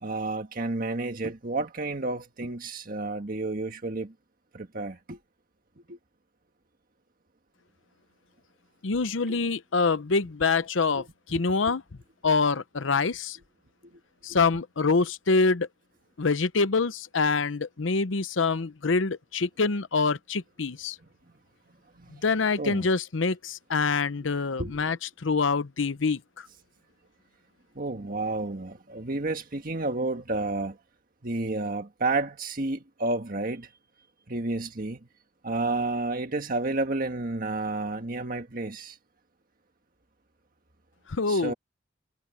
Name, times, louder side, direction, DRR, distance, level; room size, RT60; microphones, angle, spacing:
voice 1, 0.0-4.1 4.5-5.2 5.9-6.0 9.3-9.4 10.9-11.0 11.3-11.4 22.0-22.1 22.6-22.8 24.6-24.8 27.7-30.8 31.2-33.7 34.3-35.0 35.4-39.0 41.3-41.5, right 2 dB, 50° right, 1.6 m, -31 dB
voice 2, 8.8-11.8 12.2-13.4 14.2-15.7 16.2-21.0 22.1-26.5 41.1-41.5, left 4 dB, 90° left, 0.8 m, -25 dB
head